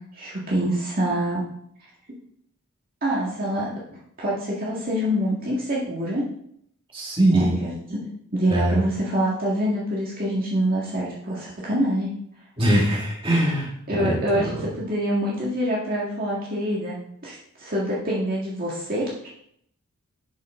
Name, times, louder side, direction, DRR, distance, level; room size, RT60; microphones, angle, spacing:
voice 1, 0.1-1.5 3.0-6.3 7.3-8.0 8.3-12.1 13.9-14.5 14.8-19.3, equal, 40° right, -5 dB, 1.9 m, -26 dB
voice 2, 6.9-7.6 8.5-8.8 12.6-14.7, right 1 dB, 25° right, -4 dB, 2.4 m, -22 dB
11.0 x 5.7 x 3.7 m, 0.70 s
head